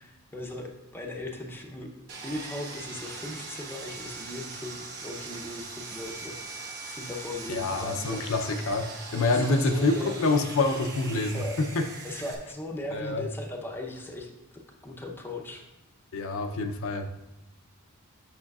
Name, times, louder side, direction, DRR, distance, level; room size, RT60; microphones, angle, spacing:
voice 1, 0.0-1.9 2.2-6.3 6.9-8.2 9.3-10.6 11.3-11.6 12.0-14.3 14.8-15.7, left 1 dB, 10° left, 0 dB, 0.6 m, -38 dB
Sawing, 2.1-12.3, right 4 dB, 50° right, 1.1 m, -41 dB
voice 2, 7.5-8.8 9.1-11.8 12.9-13.2 16.1-17.1, left 3 dB, 65° left, 4 dB, 0.5 m, -26 dB
8.8 x 5.6 x 2.3 m, 0.94 s
head